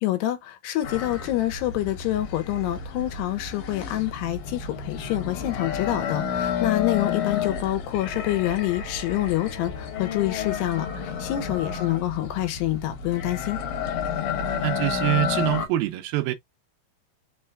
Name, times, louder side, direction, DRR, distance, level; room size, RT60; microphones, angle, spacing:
voice 1, 0.0-13.6, left 15 dB, 80° left, 3.0 m, -27 dB
sound 1, 0.8-15.7, left 7 dB, 65° left, 3.0 m, -31 dB
voice 2, 14.6-16.3, right 16 dB, 80° right, 2.2 m, -25 dB
6.3 x 3.2 x 2.3 m
omnidirectional pair, 4.8 m